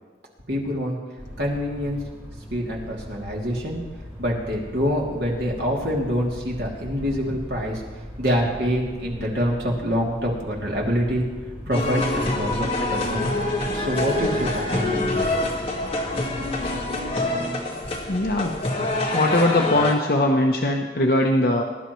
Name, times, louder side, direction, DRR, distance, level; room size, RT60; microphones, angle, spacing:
voice 1, 0.5-1.0 1.4-2.0 2.5-3.8 4.2-11.3 11.7-13.3 13.7-15.4, equal, 85° right, -3 dB, 2.9 m, -26 dB
sound 1, 1.2-16.9, equal, 10° right, 4.3 m, -40 dB
sound 2, 11.7-19.9, left 2 dB, 30° left, 1.9 m, -26 dB
voice 2, 18.1-18.5 19.1-21.6, left 1 dB, 55° left, 1 dB, 0.8 m, -20 dB
21.5 x 11.5 x 3.1 m, 1.4 s
head